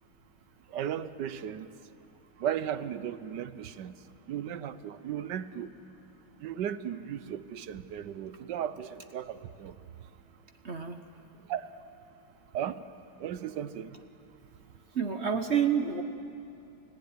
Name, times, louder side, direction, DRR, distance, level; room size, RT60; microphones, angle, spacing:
voice 1, 0.7-1.7 2.4-3.9 4.3-5.7 6.4-9.7 11.5-11.7 12.5-12.8 13.2-14.0, right 9 dB, 65° right, 14 dB, 1.1 m, -35 dB
voice 2, 10.6-11.0 14.9-16.0, right 7 dB, 50° right, 7 dB, 0.8 m, -28 dB
29.5 x 16.0 x 9.5 m, 2.8 s
omnidirectional pair, 2.4 m